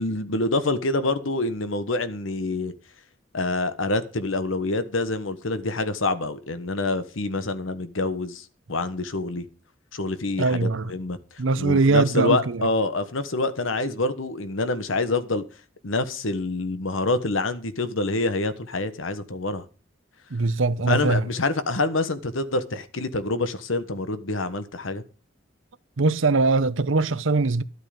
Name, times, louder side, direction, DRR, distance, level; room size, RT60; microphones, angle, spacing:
voice 1, 0.0-2.7 3.3-9.4 9.9-15.4 15.8-19.7 20.9-25.0, left 2 dB, 85° left, 1.3 m, -26 dB
voice 2, 10.4-10.9 11.4-12.7 20.3-21.3 26.0-27.6, right 3 dB, 80° right, 0.8 m, -21 dB
13.0 x 8.2 x 5.2 m
head